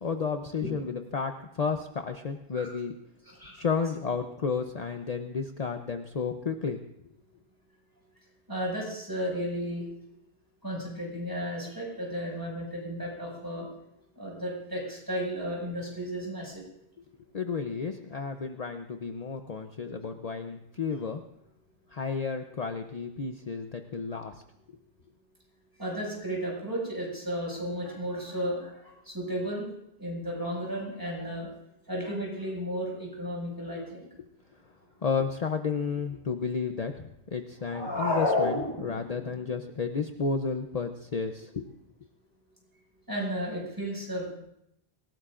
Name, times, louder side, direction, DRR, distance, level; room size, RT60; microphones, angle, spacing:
voice 1, 0.0-2.9 3.5-6.8 17.3-21.2 21.9-24.4 35.0-41.7, left 5 dB, 45° left, 6 dB, 0.8 m, -32 dB
voice 2, 3.2-3.6 8.5-10.1 10.6-13.7 14.2-16.6 25.8-29.7 30.0-31.5 31.9-34.1 43.1-44.3, equal, 20° right, -3 dB, 6.0 m, -34 dB
sound 1, 37.7-39.3, left 2 dB, 25° left, 1.9 m, -28 dB
26.0 x 17.0 x 2.5 m, 0.79 s
omnidirectional pair, 1.0 m